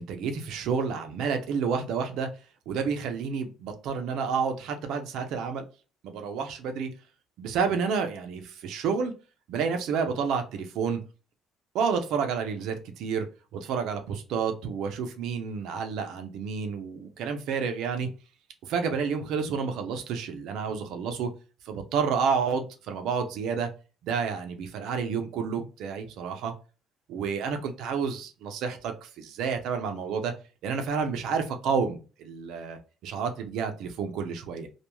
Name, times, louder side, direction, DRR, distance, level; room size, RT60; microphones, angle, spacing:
voice 1, 0.0-2.3 2.7-5.6 6.0-6.9 7.4-9.1 9.5-11.0 11.7-13.3 13.5-18.1 18.6-21.3 21.7-23.7 24.0-26.5 27.1-30.3 30.6-34.7, right 6 dB, 75° right, 0.5 m, -30 dB
2.3 x 2.2 x 3.0 m
cardioid pair, 120°, 0 cm